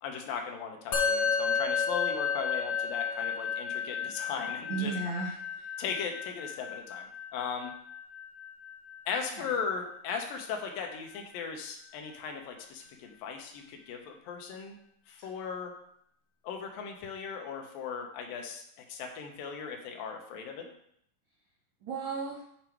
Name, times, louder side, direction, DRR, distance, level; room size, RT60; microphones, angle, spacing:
voice 1, 0.0-4.9 5.8-7.7 9.1-14.8 15.1-15.7 16.4-18.6 18.9-20.7, left 6 dB, 80° left, 3 dB, 2.7 m, -37 dB
Musical instrument, 0.9-10.5, left 6 dB, 60° left, 1.3 m, -33 dB
voice 2, 4.7-5.7 9.3-9.5 15.2-15.3 21.8-22.4, right 4 dB, 70° right, -6 dB, 1.1 m, -35 dB
7.5 x 5.0 x 4.6 m, 0.70 s
omnidirectional pair, 4.1 m